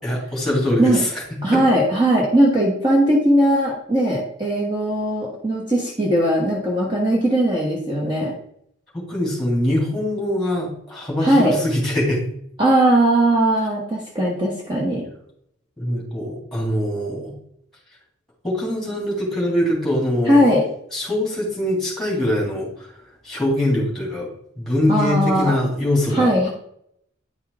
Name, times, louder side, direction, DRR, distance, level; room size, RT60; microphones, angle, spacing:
voice 1, 0.0-1.1 1.5-1.6 8.9-12.2 15.8-17.3 18.4-20.4 20.9-22.9 23.2-26.5, left 1 dB, ahead, -4 dB, 3.0 m, -23 dB
voice 2, 1.4-8.3 11.2-11.6 12.6-15.0 20.2-20.7 24.9-25.6 26.1-26.5, right 1 dB, 25° right, -4 dB, 1.5 m, -19 dB
10.0 x 5.6 x 3.6 m, 0.70 s
head